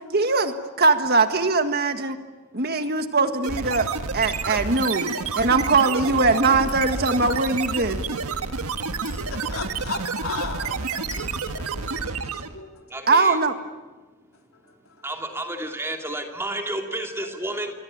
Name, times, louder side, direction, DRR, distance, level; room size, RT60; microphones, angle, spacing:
voice 1, 0.1-2.2 2.5-3.9 4.1-8.0 13.1-13.5, right 3 dB, 45° right, 7 dB, 1.7 m, -21 dB
sound 1, 3.4-12.6, right 4 dB, 90° right, 1.6 m, -29 dB
Chink clink, 6.7-7.0 9.1-9.4 11.1-11.4, left 4 dB, 25° left, 5.3 m, -44 dB
voice 2, 8.9-12.8 14.6-15.1 17.2-17.3, left 4 dB, 75° left, 3 dB, 3.7 m, -37 dB
voice 3, 12.9-13.4 15.0-17.7, right 1 dB, 10° right, 3 dB, 2.7 m, -31 dB
27.0 x 23.0 x 8.8 m, 1.2 s
head